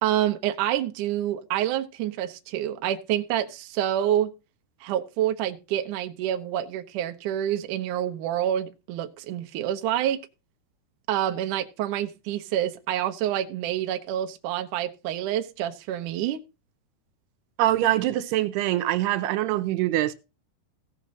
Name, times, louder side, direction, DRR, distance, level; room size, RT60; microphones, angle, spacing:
voice 1, 0.0-4.3 4.8-10.2 11.1-16.4, right 11 dB, 70° right, 2.1 m, -27 dB
voice 2, 17.6-20.1, right 14 dB, 85° right, 2.8 m, -24 dB
17.5 x 5.9 x 3.8 m
omnidirectional pair, 4.6 m